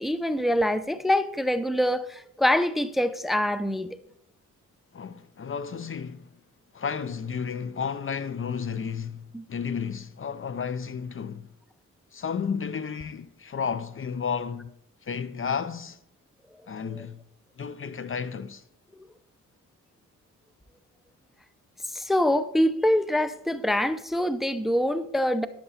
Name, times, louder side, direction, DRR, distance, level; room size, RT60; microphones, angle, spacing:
voice 1, 0.0-4.0 9.3-9.4 16.9-17.0 21.9-25.5, left 1 dB, ahead, 0.7 m, -25 dB
voice 2, 4.9-6.4 6.7-11.5 12.1-14.7 15.0-16.0 16.7-17.2 17.6-18.6, left 6 dB, 40° left, 0.7 m, -32 dB
11.5 x 7.7 x 4.2 m
cardioid pair, 70°, 32 cm